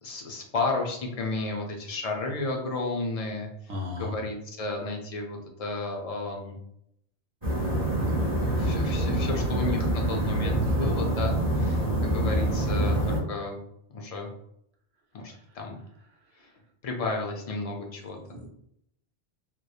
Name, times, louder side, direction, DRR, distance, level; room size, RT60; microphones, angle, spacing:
voice 1, 0.0-3.5 4.0-6.5 8.1-13.6 13.9-14.3 15.1-15.8 16.4-16.5 16.8-18.2, left 3 dB, 60° left, 1 dB, 0.4 m, -33 dB
voice 2, 3.7-4.1 10.8-10.9 18.1-18.5, left 2 dB, 70° right, 0 dB, 0.9 m, -34 dB
sound 1, 7.4-13.2, right 1 dB, 20° right, 0.7 m, -26 dB
2.9 x 2.1 x 2.3 m, 0.75 s
omnidirectional pair, 1.1 m